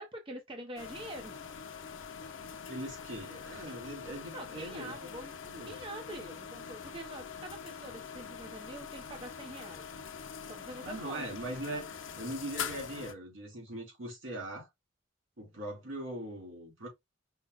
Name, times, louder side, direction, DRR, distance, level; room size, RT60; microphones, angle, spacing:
voice 1, 0.0-1.4 4.3-9.9 10.5-11.2, right 1 dB, 25° right, 0.7 m, -45 dB
sound 1, 0.8-13.1, left 6 dB, 85° left, 0.8 m, -44 dB
voice 2, 2.7-4.9 5.4-5.8 10.8-11.9 12.2-14.7 15.4-16.9, right 1 dB, 90° right, 3.1 m, -41 dB
5.2 x 2.1 x 3.9 m
head